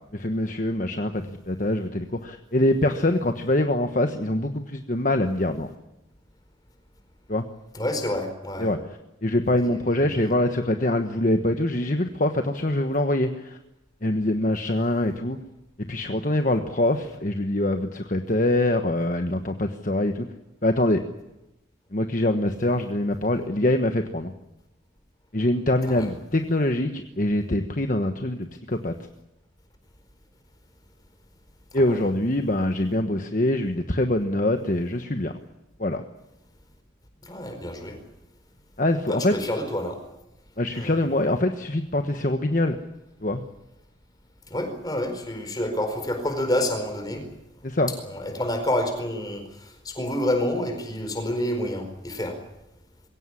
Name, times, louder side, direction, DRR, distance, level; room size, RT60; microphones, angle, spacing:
voice 1, 0.1-5.7 7.3-7.4 8.6-8.8 9.2-13.6 14.0-15.4 15.9-20.3 20.6-21.0 21.9-24.3 25.3-28.9 31.7-35.3 35.8-36.0 38.8-39.3 40.6-42.8 43.2-43.4 47.6-47.9, left 1 dB, 40° left, 6 dB, 1.2 m, -24 dB
voice 2, 7.7-8.7 9.6-10.3 25.9-26.1 31.7-32.0 37.2-38.0 39.1-40.0 40.7-41.0 44.5-47.3 48.0-52.4, left 1 dB, 20° left, 6 dB, 4.6 m, -28 dB
22.5 x 17.5 x 9.9 m, 0.93 s
head